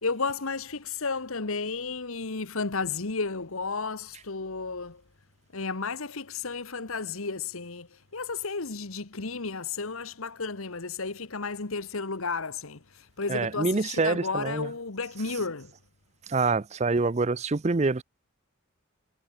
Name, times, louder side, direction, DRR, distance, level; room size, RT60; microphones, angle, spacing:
voice 1, 0.0-5.0 5.5-15.7, left 4 dB, 75° left, 1.5 m, -33 dB
voice 2, 13.3-14.7 16.3-18.0, right 3 dB, 30° right, 0.5 m, -26 dB
head